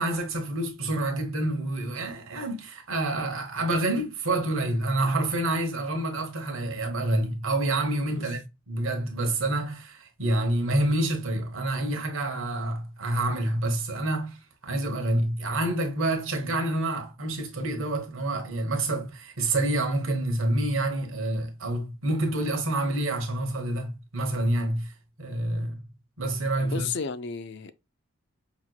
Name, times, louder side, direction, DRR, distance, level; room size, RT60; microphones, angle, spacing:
voice 1, 0.0-8.4 8.7-14.4 14.6-24.9 25.2-25.8 26.2-26.9, right 1 dB, 65° right, 1.2 m, -28 dB
voice 2, 26.6-27.7, left 6 dB, 55° left, 0.4 m, -33 dB
5.7 x 3.0 x 2.3 m
head